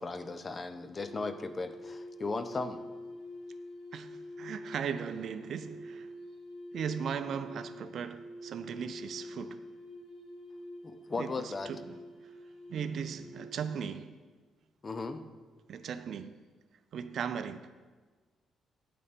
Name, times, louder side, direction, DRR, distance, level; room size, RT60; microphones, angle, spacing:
voice 1, 0.0-2.9 10.8-11.7 14.8-15.2, left 3 dB, 30° left, 0.5 m, -36 dB
sound 1, 0.9-13.7, left 1 dB, 75° left, 1.6 m, -47 dB
voice 2, 3.9-6.1 6.7-9.6 11.2-12.0 12.7-14.1 15.7-16.3 16.9-17.7, right 7 dB, 65° right, 0.4 m, -37 dB
8.7 x 5.1 x 4.3 m
cardioid pair, 90°, 0 cm